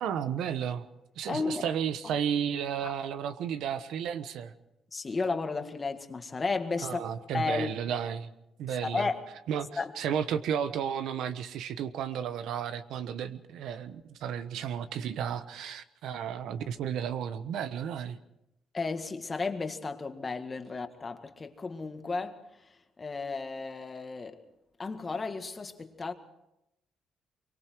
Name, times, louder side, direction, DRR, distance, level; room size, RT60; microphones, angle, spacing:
voice 1, 0.0-0.9 1.2-4.5 6.8-8.3 8.6-9.1 9.5-9.7 10.0-18.2, right 8 dB, 80° right, 1.1 m, -33 dB
voice 2, 1.3-1.7 2.0-2.1 2.8-2.9 4.9-7.0 7.3-7.7 8.7-9.3 9.8-10.0 18.7-24.4 24.8-26.1, left 4 dB, 30° left, 1.9 m, -33 dB
25.0 x 23.0 x 4.7 m
cardioid pair, 90°, 0 cm